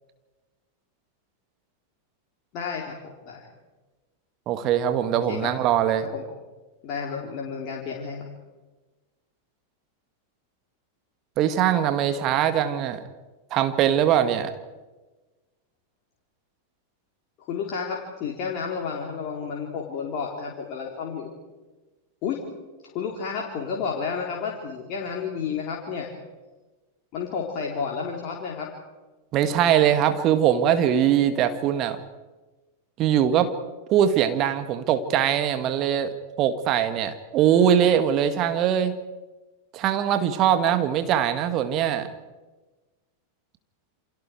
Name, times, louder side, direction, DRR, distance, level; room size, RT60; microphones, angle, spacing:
voice 1, 2.5-3.4 5.3-5.5 6.1-6.2 6.8-8.3 17.5-21.3 22.2-22.4 22.9-26.1 27.1-28.7, left 6 dB, 40° left, -2 dB, 3.9 m, -31 dB
voice 2, 4.5-6.1 11.4-13.0 13.5-14.5 29.3-32.0 33.0-33.5 33.9-36.1 36.4-39.0 39.7-42.1, right 9 dB, 35° right, 9 dB, 1.9 m, -22 dB
29.5 x 26.5 x 4.8 m, 1.2 s
figure-of-eight pair, 90°, 0 cm